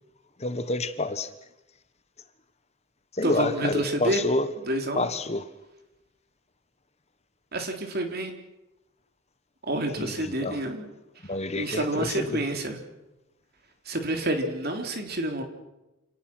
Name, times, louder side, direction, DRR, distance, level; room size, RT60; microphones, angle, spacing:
voice 1, 0.4-1.3 3.1-4.5 4.9-5.5 10.0-10.6 11.2-12.4, left 2 dB, 30° left, 1.2 m, -28 dB
voice 2, 3.2-4.2 4.7-5.0 7.5-8.3 9.7-10.8 11.5-12.8 13.9-15.4, right 1 dB, 50° right, 3.6 m, -28 dB
28.5 x 18.5 x 6.2 m
head